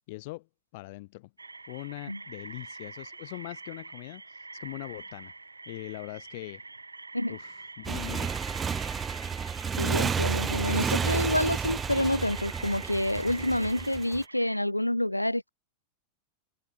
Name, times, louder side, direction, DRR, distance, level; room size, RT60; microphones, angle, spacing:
voice 1, 0.1-0.5 0.7-1.3 1.7-5.3 5.7-6.6 7.3-8.4, left 22 dB, 50° left, 2.0 m, -41 dB
sound 1, 1.4-14.6, right 3 dB, 80° right, 5.4 m, -45 dB
Motorcycle, 7.8-14.2, right 6 dB, 20° right, 0.9 m, -31 dB
voice 2, 9.8-15.5, left 1 dB, 85° left, 0.5 m, -28 dB
figure-of-eight pair, 90°, 0 cm